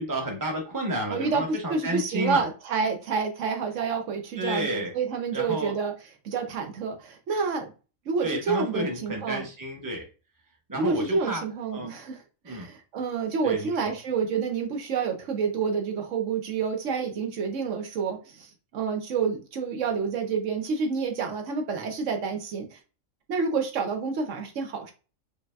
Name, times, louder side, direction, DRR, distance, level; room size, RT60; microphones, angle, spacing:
voice 1, 0.0-2.4 4.4-4.9 5.3-5.7 8.2-10.0 10.7-11.4 11.7-11.9 12.4-12.7 13.4-13.9, equal, 15° right, 0.9 m, -31 dB
voice 2, 1.1-5.9 6.2-7.7 8.1-9.5 10.7-22.8 23.3-24.9, right 5 dB, 75° right, 1.1 m, -29 dB
5.0 x 2.8 x 2.2 m
omnidirectional pair, 1.3 m